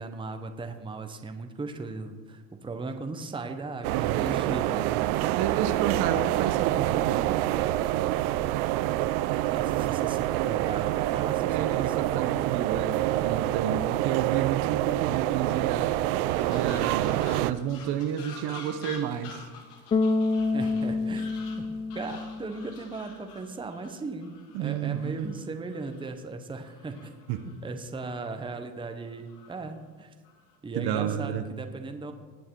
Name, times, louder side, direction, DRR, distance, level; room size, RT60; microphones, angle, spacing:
voice 1, 0.0-5.3 9.5-12.0 20.5-21.7 21.9-27.2 27.4-30.1 30.6-32.1, right 3 dB, 10° right, 6 dB, 0.9 m, -37 dB
sound 1, 3.8-17.5, right 15 dB, 70° right, 0.7 m, -27 dB
voice 2, 5.3-7.5 11.5-15.9 16.5-19.5 24.5-25.3 27.3-27.4 30.8-31.4, right 9 dB, 55° right, 9 dB, 1.1 m, -31 dB
sound 2, 16.3-26.1 26.5-27.6 27.9-28.5 29.1-29.6 30.2-30.6, left 4 dB, 85° left, 2.9 m, -48 dB
Bass guitar, 19.9-23.0, left 3 dB, 15° left, 0.3 m, -28 dB
19.0 x 6.5 x 4.6 m, 1.5 s
supercardioid pair, 110°, 46 cm